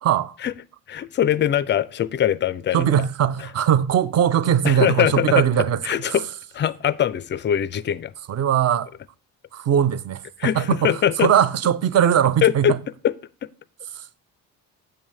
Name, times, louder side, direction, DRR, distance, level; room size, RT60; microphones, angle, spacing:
voice 1, 0.0-0.3 2.7-5.8 6.1-6.2 8.3-8.9 9.5-12.8 14.0-14.1, right 9 dB, 35° right, 0.6 m, -20 dB
voice 2, 0.9-2.9 4.6-5.4 5.8-6.2 6.5-8.1 10.4-11.3 12.4-12.8 13.0-13.1 13.4-13.5, left 10 dB, 25° left, 0.4 m, -22 dB
8.6 x 7.3 x 3.2 m
figure-of-eight pair, 45°, 48 cm